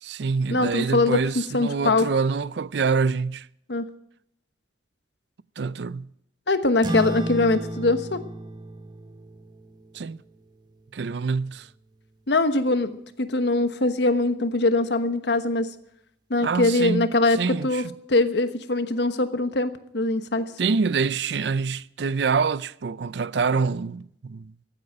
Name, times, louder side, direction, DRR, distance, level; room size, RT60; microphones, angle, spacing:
voice 1, 0.0-3.5 5.6-6.1 9.9-10.2 10.9-11.7 16.4-17.9 20.6-24.5, right 5 dB, 70° right, 0.5 m, -26 dB
voice 2, 0.5-2.1 3.7-3.9 6.5-8.2 12.3-15.7 16.3-17.4 17.6-17.8 18.1-20.5, left 2 dB, 70° left, 1.2 m, -22 dB
sound 1, 6.8-11.7, right 1 dB, 25° right, 1.1 m, -34 dB
15.0 x 8.8 x 8.7 m
head